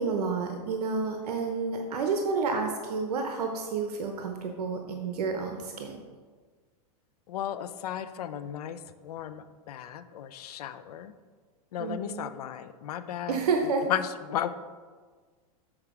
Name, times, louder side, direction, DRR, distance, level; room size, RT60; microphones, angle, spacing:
voice 1, 0.0-5.9 11.8-12.3 13.3-13.9, right 4 dB, 90° right, 4 dB, 0.9 m, -30 dB
voice 2, 7.3-11.1 11.7-14.5, left 10 dB, 80° left, 12 dB, 0.6 m, -35 dB
7.4 x 4.6 x 4.9 m, 1.5 s
supercardioid pair, 145°, 19 cm